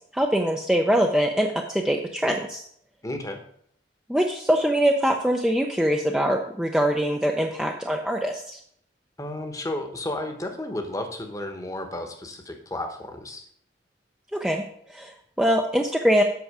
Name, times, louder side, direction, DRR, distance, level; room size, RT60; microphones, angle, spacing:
voice 1, 0.1-2.6 4.1-8.6 14.3-14.6 14.9-16.2, equal, 5° right, 1 dB, 0.6 m, -23 dB
voice 2, 3.0-3.4 9.2-13.5, left 1 dB, 20° left, 5 dB, 1.0 m, -33 dB
8.2 x 6.2 x 4.8 m, 0.66 s
head